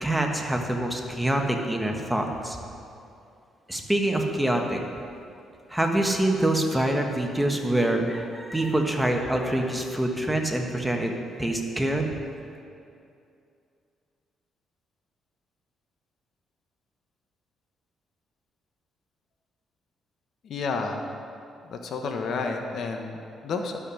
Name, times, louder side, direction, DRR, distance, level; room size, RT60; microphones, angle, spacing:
voice 1, 0.0-2.6 3.7-4.8 5.7-11.1 11.4-12.1, right 1 dB, 5° right, 2 dB, 1.2 m, -25 dB
voice 2, 20.4-21.1 21.7-23.8, left 4 dB, 65° left, 4 dB, 1.0 m, -31 dB
12.0 x 5.7 x 6.3 m, 2.5 s
cardioid pair, 90°, 0 cm